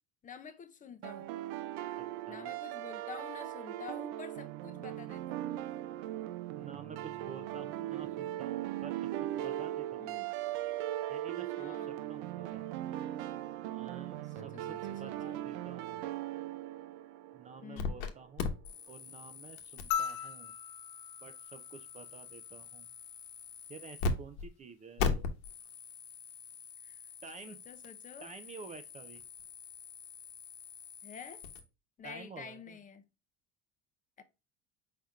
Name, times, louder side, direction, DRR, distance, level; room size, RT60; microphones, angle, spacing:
voice 1, 0.2-1.3 2.3-5.4 10.0-10.3 11.6-12.1 14.3-15.4 17.6-18.0 26.8-27.0 27.5-28.3 31.0-31.4 32.0-33.1 34.2-34.3, left 6 dB, 25° left, 0.5 m, -49 dB
sound 1, 1.0-17.9, right 13 dB, 80° right, 0.6 m, -39 dB
voice 2, 2.0-2.5 6.5-9.1 9.3-10.2 11.1-12.7 13.7-16.1 17.3-18.5 18.9-20.5 21.2-22.9 23.7-25.3 27.2-27.6 28.2-29.2 32.0-32.8, right 5 dB, 25° right, 0.4 m, -50 dB
sound 2, 17.8-18.1 18.4-24.1 24.4-24.5 25.0-31.6, left 5 dB, 85° left, 1.1 m, -40 dB
sound 3, 19.9-22.5 24.1-24.2, left 8 dB, 70° left, 0.7 m, -39 dB
5.0 x 4.2 x 2.3 m
cardioid pair, 130°, 32 cm